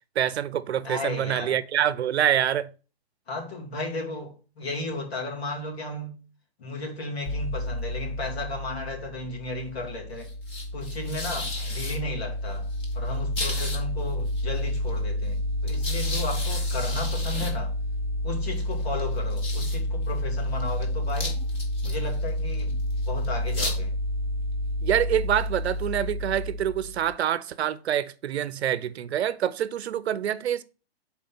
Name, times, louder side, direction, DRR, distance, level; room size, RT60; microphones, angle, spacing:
voice 1, 0.2-2.7 24.8-30.6, right 10 dB, 85° right, 0.6 m, -26 dB
voice 2, 0.8-1.6 3.3-6.2 6.6-10.3 10.7-12.7 12.9-15.4 15.6-17.7 18.2-21.4 21.8-22.8 23.0-23.9, left 2 dB, 75° left, 2.6 m, -34 dB
sound 1, 7.3-27.2, left 1 dB, 15° left, 1.1 m, -29 dB
5.3 x 4.2 x 5.8 m
hypercardioid pair, 160°, 32 cm